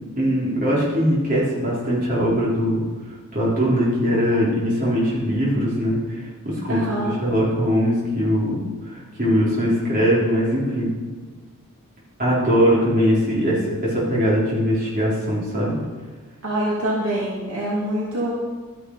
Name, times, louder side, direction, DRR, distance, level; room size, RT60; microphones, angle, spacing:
voice 1, 0.2-2.8 3.3-6.0 6.6-8.5 9.2-10.9 12.2-15.8, equal, 40° right, -6 dB, 4.5 m, -21 dB
voice 2, 6.7-7.2 16.4-18.3, right 1 dB, 70° right, -5 dB, 2.6 m, -25 dB
13.0 x 10.5 x 5.0 m, 1.4 s
head